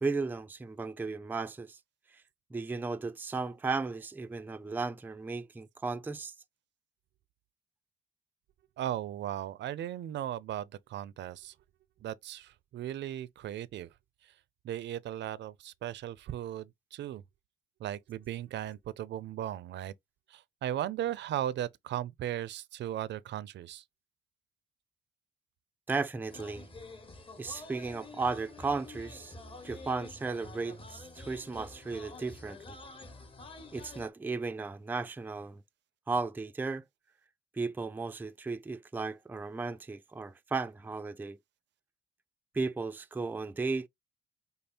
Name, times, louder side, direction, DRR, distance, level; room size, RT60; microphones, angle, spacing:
voice 1, 0.0-1.8 2.5-6.3 25.9-26.7 27.4-29.3 29.6-32.8 33.7-35.6 36.1-36.8 37.5-41.4 42.5-43.9, right 4 dB, 10° right, 0.4 m, -35 dB
voice 2, 8.8-11.5 12.0-13.9 14.6-17.2 17.8-19.9 20.3-23.8, right 12 dB, 65° right, 0.5 m, -37 dB
sound 1, 26.3-34.1, left 2 dB, 25° left, 1.0 m, -48 dB
5.3 x 2.0 x 4.3 m
cardioid pair, 90°, 20 cm